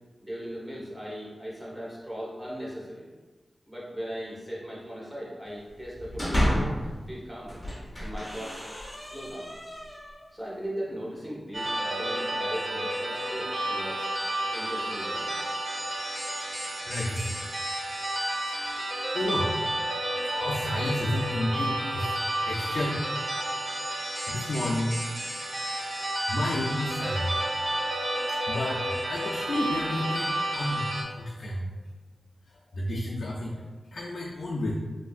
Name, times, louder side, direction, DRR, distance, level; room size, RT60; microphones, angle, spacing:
voice 1, 0.2-3.1 3.7-7.6 8.0-8.6 9.0-9.5 10.3-14.1 14.5-15.3, equal, 15° right, -6 dB, 1.0 m, -38 dB
sound 1, 5.8-6.9 7.4-10.2, equal, 20° left, 0.6 m, -31 dB
sound 2, 11.5-31.0, right 1 dB, 40° right, 0.5 m, -31 dB
voice 2, 16.6-17.4 19.1-19.5 20.1-23.0 24.3-25.0 26.3-27.4 28.3-30.9 31.2-31.7 32.7-33.5 33.9-34.7, left 1 dB, 75° left, -4 dB, 0.4 m, -31 dB
3.0 x 2.6 x 2.4 m, 1.3 s
wide cardioid pair, 85°, 0 cm